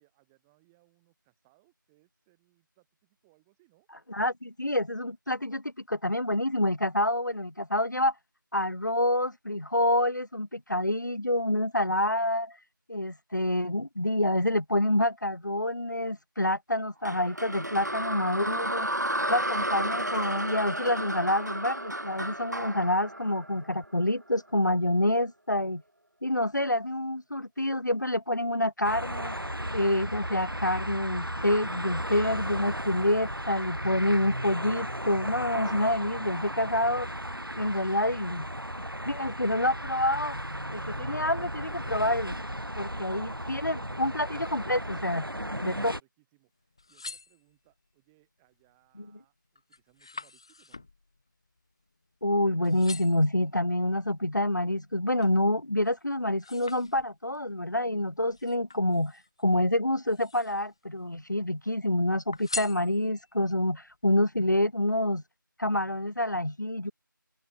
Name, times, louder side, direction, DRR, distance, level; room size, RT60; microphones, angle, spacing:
voice 1, 0.0-3.9 45.2-50.9, right 24 dB, 5° right, 6.3 m, -68 dB
voice 2, 4.1-8.1 8.5-12.6 12.9-18.9 19.3-25.8 26.2-29.4 29.7-37.1 37.5-38.5 39.1-40.4 40.7-42.4 42.8-45.2 45.6-45.9 52.2-65.2 65.6-66.9, left 1 dB, 60° left, 1.4 m, -27 dB
sound 1, 17.0-24.2, right 1 dB, 55° right, 5.3 m, -32 dB
sound 2, 28.8-46.0, equal, 90° right, 3.1 m, -35 dB
sound 3, 46.6-47.9 48.5-48.9 49.2-52.3 52.6-53.3 54.0-55.4 55.9-57.4 58.3-59.4 60.0-60.8 61.1-61.8 62.3-63.4 63.9-64.0, left 3 dB, 15° left, 3.7 m, -43 dB
open air
figure-of-eight pair, 175°, 11 cm